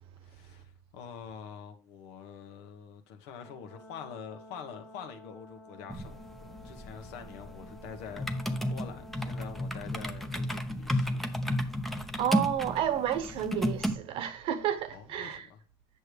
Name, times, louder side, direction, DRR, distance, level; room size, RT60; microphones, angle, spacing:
voice 1, 0.2-6.2 6.6-11.3 14.9-15.6, left 7 dB, 70° left, 1.5 m, -46 dB
Brass instrument, 3.4-9.8, left 1 dB, 25° left, 1.7 m, -52 dB
sound 1, 5.9-13.9, equal, ahead, 0.8 m, -33 dB
voice 2, 12.2-15.5, right 10 dB, 50° right, 1.0 m, -31 dB
8.7 x 6.7 x 3.4 m
supercardioid pair, 130°, 11 cm